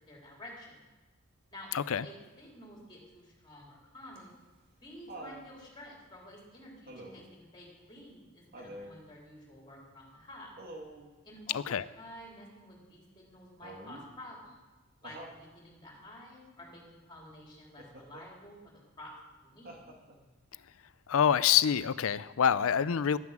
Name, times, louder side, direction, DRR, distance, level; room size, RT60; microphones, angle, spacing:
voice 1, 0.1-0.9 1.5-4.3 4.8-10.6 11.2-14.6 15.0-19.1 19.4-19.8, left 1 dB, 20° left, -2 dB, 3.4 m, -51 dB
voice 2, 1.7-2.0 11.5-11.8 21.1-23.2, left 8 dB, 75° left, 17 dB, 0.5 m, -26 dB
Laughter, 4.2-5.5 6.9-7.4 8.5-9.0 10.6-11.1 13.6-14.1 15.0-15.4 17.8-18.3 19.7-20.3 21.7-21.8, right 1 dB, 45° right, 1.9 m, -47 dB
11.0 x 9.5 x 7.4 m, 1.2 s
head